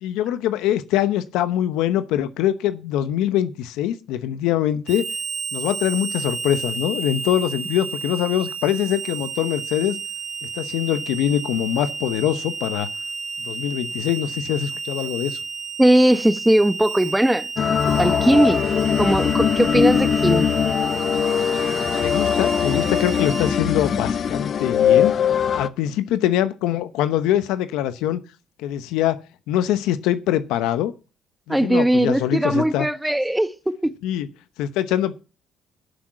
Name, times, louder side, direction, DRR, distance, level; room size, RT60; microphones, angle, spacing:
voice 1, 0.0-5.1 5.5-10.0 10.4-12.9 13.4-15.4 22.0-25.2 25.5-28.2 28.6-29.2 29.5-30.9 31.5-32.9 34.0-34.3 34.6-35.1, left 11 dB, 85° left, 0.8 m, -23 dB
Harmonica, 4.9-23.6, right 5 dB, 45° right, 2.4 m, -31 dB
voice 2, 15.8-17.5 18.0-18.6 19.0-20.5 31.5-33.9, right 1 dB, 5° right, 1.0 m, -19 dB
sound 1, 17.6-25.7, left 8 dB, 55° left, 0.7 m, -21 dB
11.0 x 6.2 x 7.4 m
supercardioid pair, 80°, 0 cm